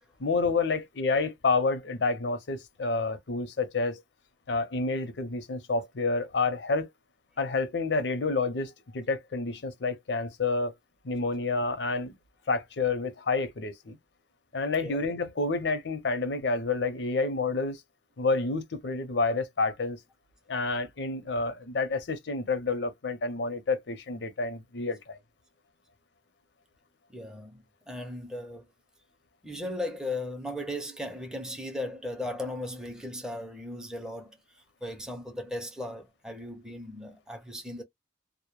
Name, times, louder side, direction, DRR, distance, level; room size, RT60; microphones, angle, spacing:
voice 1, 0.2-4.0 4.5-6.9 7.4-10.7 11.0-12.1 12.5-14.0 14.5-17.8 18.2-20.0 20.5-25.2, left 3 dB, 85° left, 0.6 m, -29 dB
voice 2, 27.1-28.7 29.4-34.4 34.8-37.8, left 1 dB, 5° right, 0.5 m, -37 dB
2.1 x 2.1 x 2.9 m
head